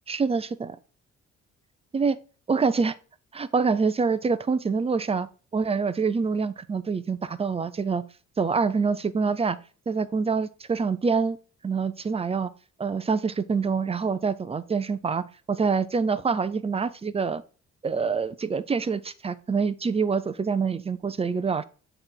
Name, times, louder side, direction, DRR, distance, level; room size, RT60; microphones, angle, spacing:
voice 1, 0.1-0.8 1.9-2.2 2.5-2.9 3.3-5.3 5.5-8.0 8.4-9.6 9.9-11.4 11.6-12.5 12.8-17.4 17.8-21.6, right 5 dB, 20° right, 0.5 m, -26 dB
7.4 x 3.2 x 4.5 m
cardioid pair, 90°, 30 cm